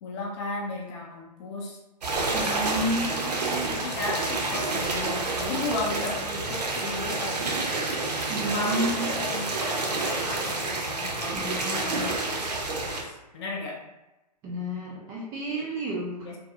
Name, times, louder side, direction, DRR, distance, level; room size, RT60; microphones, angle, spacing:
voice 1, 0.0-1.8 2.4-3.0 3.5-7.7 8.5-12.4 12.9-13.8 15.6-15.7 16.2-16.4, left 3 dB, 40° left, -1 dB, 0.5 m, -35 dB
sound 1, 2.0-13.0, right 3 dB, 70° right, 0.7 m, -29 dB
voice 2, 2.3-3.7 8.3-9.1 11.3-12.1 14.4-16.3, equal, 15° right, -4 dB, 0.3 m, -31 dB
2.6 x 2.2 x 2.6 m, 0.99 s
figure-of-eight pair, 120°, 21 cm